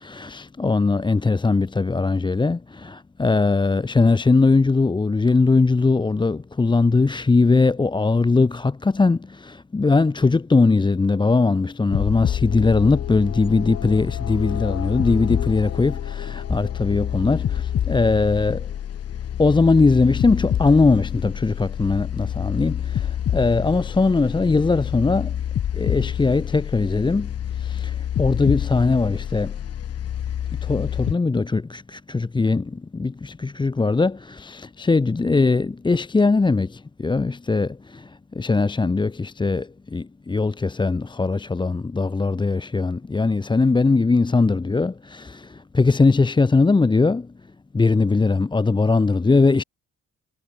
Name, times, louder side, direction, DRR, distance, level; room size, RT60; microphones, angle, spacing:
voice 1, 0.0-18.6 19.4-23.1 23.3-25.3 25.7-27.3 27.6-27.9 28.2-29.5 30.7-32.6 32.9-36.7 37.0-37.7 38.4-39.7 39.9-45.4 45.7-47.2 47.7-49.6, left 3 dB, 15° left, 0.7 m, -20 dB
sound 1, 11.9-31.1, left 10 dB, 55° left, 1.2 m, -27 dB
cardioid pair, 90°, 30 cm